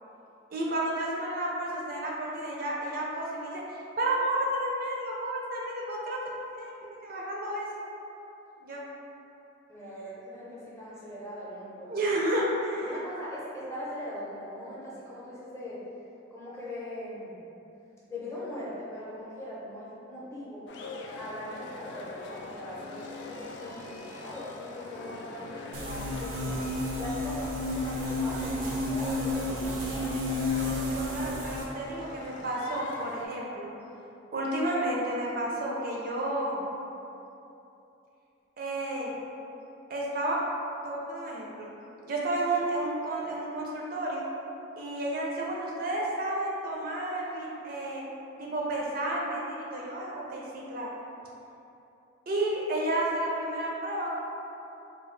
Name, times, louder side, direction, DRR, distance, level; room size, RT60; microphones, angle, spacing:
voice 1, 0.5-3.6 4.0-6.2 6.5-7.7 8.6-8.8 11.9-13.0 30.9-33.7 34.3-36.7 38.6-39.1 39.9-40.4 40.8-41.7 42.0-44.2 44.8-48.0 48.4-50.9 52.3-54.1, right 1 dB, 45° right, -3 dB, 0.4 m, -31 dB
voice 2, 9.7-12.0 12.7-15.8 16.3-17.4 18.1-20.7 21.2-26.6 27.0-30.1, left 1 dB, 15° left, -8 dB, 0.6 m, -41 dB
sound 1, 20.7-33.3, left 2 dB, 60° left, 0.3 m, -43 dB
sound 2, 22.1-27.6, left 3 dB, 90° left, 0.8 m, -47 dB
sound 3, 25.7-31.6, left 1 dB, 90° right, 0.6 m, -31 dB
3.7 x 2.3 x 3.1 m, 2.8 s
head